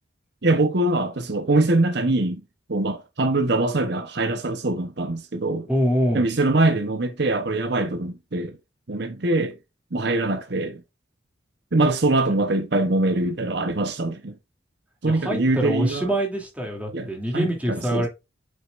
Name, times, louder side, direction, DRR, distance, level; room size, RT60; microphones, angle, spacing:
voice 1, 0.4-2.4 2.7-5.7 6.1-8.6 8.9-9.6 9.9-10.8 11.7-14.3 15.0-16.1 16.9-18.1, right 2 dB, 55° right, 0.9 m, -23 dB
voice 2, 5.7-6.2 15.1-18.1, equal, 5° right, 2.7 m, -25 dB
7.9 x 6.2 x 2.5 m
head